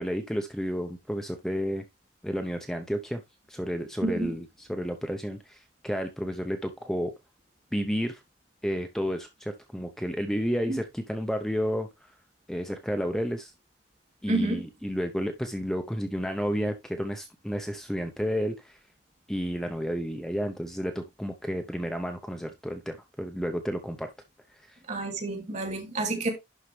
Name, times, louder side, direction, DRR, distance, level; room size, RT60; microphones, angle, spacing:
voice 1, 0.0-1.8 2.2-3.2 3.5-7.1 7.7-8.2 8.6-12.1 12.5-13.5 14.2-18.8 19.3-24.1 24.7-24.8, equal, 5° left, 0.7 m, -31 dB
voice 2, 14.3-14.6 24.9-26.3, right 2 dB, 40° right, 2.3 m, -29 dB
11.0 x 4.6 x 3.2 m
head